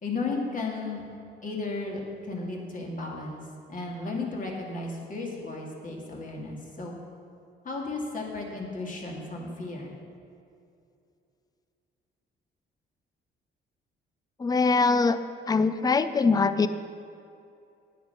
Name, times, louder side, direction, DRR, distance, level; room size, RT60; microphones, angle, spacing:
voice 1, 0.0-1.0 1.4-3.4 3.7-6.9 7.6-10.0, left 3 dB, 40° left, -1 dB, 2.5 m, -34 dB
voice 2, 14.4-15.2 15.5-16.7, left 4 dB, 20° left, 13 dB, 0.5 m, -22 dB
9.6 x 9.2 x 5.8 m, 2.6 s
cardioid pair, 90°, 20 cm